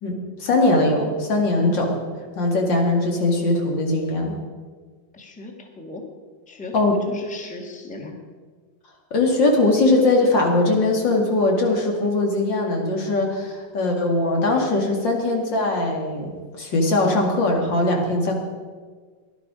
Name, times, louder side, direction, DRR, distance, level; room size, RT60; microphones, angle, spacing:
voice 1, 0.0-2.0 2.3-4.4 6.7-7.0 9.1-18.4, left 2 dB, 75° left, 1 dB, 2.9 m, -20 dB
voice 2, 5.1-6.0 6.5-8.2, left 2 dB, 5° left, 2 dB, 1.4 m, -37 dB
18.0 x 11.5 x 5.0 m, 1.5 s
omnidirectional pair, 2.0 m